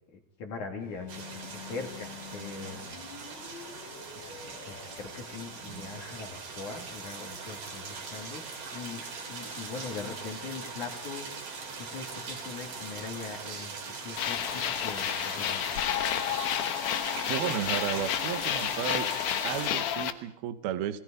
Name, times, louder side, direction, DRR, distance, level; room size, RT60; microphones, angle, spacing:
voice 1, 0.1-3.0 4.1-4.4 4.7-9.0 9.3-11.3 11.8-13.7 14.0-15.9, left 4 dB, 45° left, 3 dB, 3.5 m, -41 dB
sound 1, 0.8-13.9, left 6 dB, 65° left, 4.6 m, -51 dB
sound 2, 1.1-19.7, right 4 dB, 45° right, 4.9 m, -41 dB
sound 3, 14.2-20.1, left 10 dB, 85° left, 1.7 m, -30 dB
voice 2, 17.3-19.1 19.4-21.0, right 11 dB, 65° right, 10 dB, 2.8 m, -33 dB
30.0 x 21.0 x 5.3 m, 0.69 s
omnidirectional pair, 5.5 m